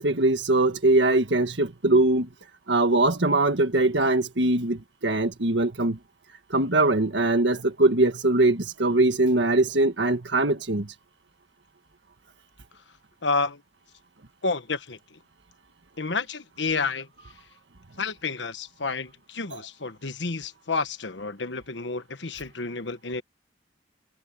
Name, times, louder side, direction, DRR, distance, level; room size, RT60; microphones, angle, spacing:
voice 1, 0.0-2.3 2.7-6.0 6.5-10.9 19.5-19.6, right 2 dB, 90° right, 1.6 m, -22 dB
voice 2, 13.2-13.6 14.4-15.2 16.0-17.1 18.0-23.2, left 4 dB, 85° left, 1.3 m, -30 dB
head